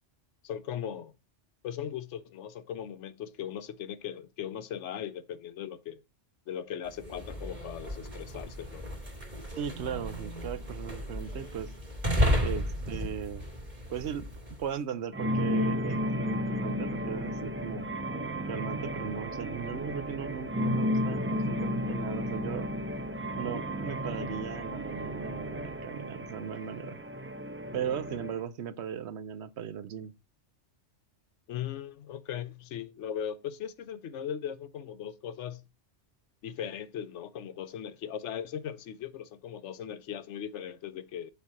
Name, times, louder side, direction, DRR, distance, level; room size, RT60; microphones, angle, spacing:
voice 1, 0.4-1.1 1.6-6.0 6.5-8.8 31.5-35.6 36.4-41.3, left 9 dB, 80° left, 1.0 m, -38 dB
sound 1, 6.9-14.7, equal, 40° right, 2.2 m, -33 dB
voice 2, 9.6-11.7 12.4-13.4 13.9-14.3 14.6-17.9 18.5-22.7 23.4-27.0 27.7-30.1, right 8 dB, 70° right, 1.0 m, -37 dB
sound 2, 15.1-28.4, equal, 20° right, 0.3 m, -33 dB
7.1 x 4.4 x 5.9 m
omnidirectional pair, 1.2 m